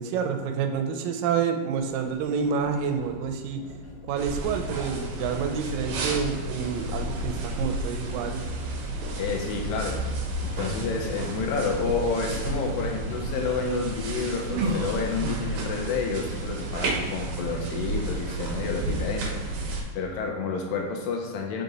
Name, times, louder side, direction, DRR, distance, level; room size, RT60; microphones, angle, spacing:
voice 1, 0.0-3.6 4.1-8.4, right 6 dB, 85° right, 6 dB, 2.2 m, -28 dB
Sliding door, 1.7-13.9, equal, 55° left, 1.7 m, -45 dB
sound 1, 4.2-19.8, right 2 dB, 70° right, 1.7 m, -31 dB
voice 2, 9.2-10.2 10.4-19.7 20.0-21.6, left 4 dB, 85° left, 2 dB, 2.5 m, -30 dB
5.3 x 4.7 x 4.0 m, 1.4 s
omnidirectional pair, 3.9 m